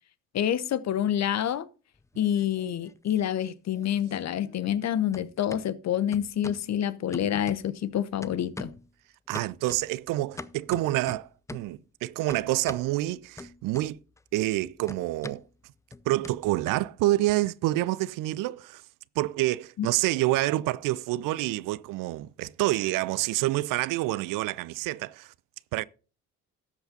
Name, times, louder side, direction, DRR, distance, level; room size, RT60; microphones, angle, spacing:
voice 1, 0.3-1.7 2.2-8.7 19.8-19.9, left 10 dB, 45° left, 0.8 m, -27 dB
sound 1, 2.0-3.0 3.3-4.9 5.1-5.6 6.1-6.7 7.1-7.9 8.2-8.9 9.3-11.8 12.3-12.9 13.4-14.2 14.5-17.3, left 2 dB, 10° left, 0.5 m, -44 dB
voice 2, 9.3-14.0 14.3-15.4 16.1-18.8 19.2-25.3 25.7-25.8, right 17 dB, 55° right, 0.5 m, -27 dB
19.0 x 7.9 x 2.7 m
figure-of-eight pair, 45°, 39 cm